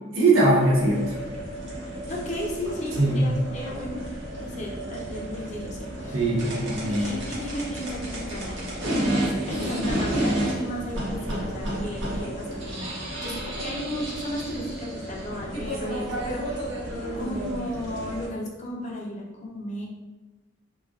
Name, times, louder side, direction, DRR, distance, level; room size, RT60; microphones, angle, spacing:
voice 1, 0.1-1.0 3.0-3.3 6.1-7.1, right 2 dB, 90° right, -4 dB, 0.8 m, -21 dB
sound 1, 0.8-18.3, right 1 dB, 60° right, 0.9 m, -31 dB
voice 2, 2.1-4.0 4.4-6.3 6.9-16.7 17.2-19.9, left 1 dB, 35° left, -2 dB, 0.6 m, -35 dB
3.1 x 2.4 x 2.4 m, 1.2 s
head